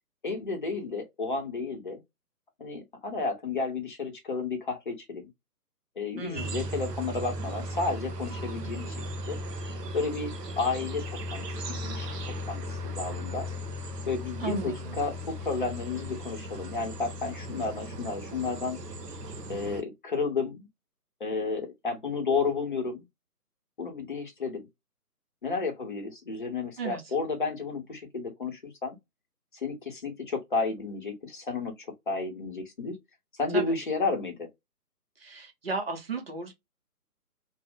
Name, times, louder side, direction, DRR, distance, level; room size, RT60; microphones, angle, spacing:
voice 1, 0.2-2.0 2.6-5.2 6.0-9.0 9.3-9.4 9.9-11.0 11.3-11.5 11.8-12.1 12.5-13.5 14.1-18.8 19.5-20.7 21.2-23.0 23.8-24.7 25.4-29.0 29.5-31.7 32.1-32.9 33.4-34.5, left 4 dB, 30° left, 0.8 m, -32 dB
voice 2, 6.1-6.6 14.4-15.0 26.8-27.0 33.5-33.8 35.2-36.5, right 4 dB, 40° right, 0.8 m, -35 dB
Birds chirping, 6.4-19.8, equal, 85° right, 0.7 m, -37 dB
2.4 x 2.1 x 3.5 m
figure-of-eight pair, 145°, 47 cm